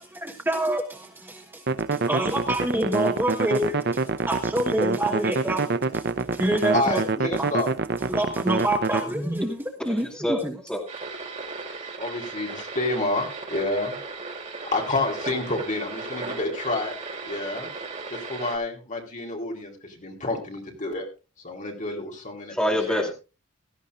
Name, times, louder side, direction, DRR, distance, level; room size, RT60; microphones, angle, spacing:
voice 1, 0.0-7.1 7.4-7.5 8.0-10.6, right 1 dB, 10° right, 1.3 m, -27 dB
sound 1, 1.7-9.0, right 4 dB, 55° right, 0.6 m, -26 dB
voice 2, 6.7-7.7 12.0-13.9 14.7-16.9 17.2-17.7 18.1-21.1 21.4-22.6 22.9-23.0, left 2 dB, 40° left, 3.9 m, -29 dB
voice 3, 9.9-10.4 10.7-10.8 22.5-23.1, left 1 dB, 5° left, 2.4 m, -26 dB
sound 2, 10.9-18.6, right 3 dB, 35° right, 3.3 m, -36 dB
17.0 x 14.0 x 2.6 m
head